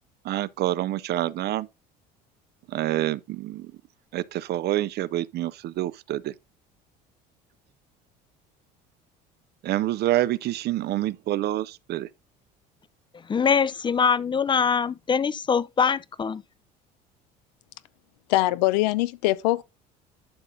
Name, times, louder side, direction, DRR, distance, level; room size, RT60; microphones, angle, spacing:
voice 1, 0.2-1.7 2.7-3.7 4.1-6.3 9.6-12.1, right 14 dB, 50° right, 0.5 m, -27 dB
voice 2, 13.3-16.4, left 6 dB, 20° left, 0.5 m, -23 dB
voice 3, 18.3-19.6, left 17 dB, 80° left, 0.5 m, -22 dB
11.5 x 5.4 x 2.6 m
hypercardioid pair, 70°, 21 cm